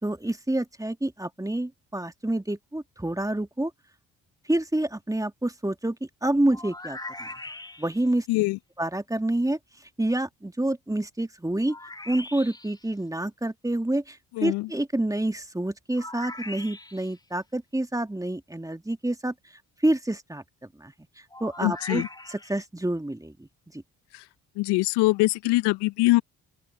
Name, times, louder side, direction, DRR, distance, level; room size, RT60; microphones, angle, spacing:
voice 1, 0.0-3.7 4.5-7.3 7.8-8.3 8.8-9.6 10.0-11.8 12.1-19.3 19.8-20.4 20.8-23.5 23.7-23.8, right 1 dB, 10° right, 2.0 m, -28 dB
sound 1, 6.5-8.1 11.7-12.8 16.0-17.2 21.3-22.6, left 2 dB, 10° left, 1.2 m, -40 dB
voice 2, 14.4-14.7 21.6-22.1 24.1-24.2 24.6-26.2, left 21 dB, 70° left, 0.9 m, -23 dB
open air
hypercardioid pair, 45°, 42 cm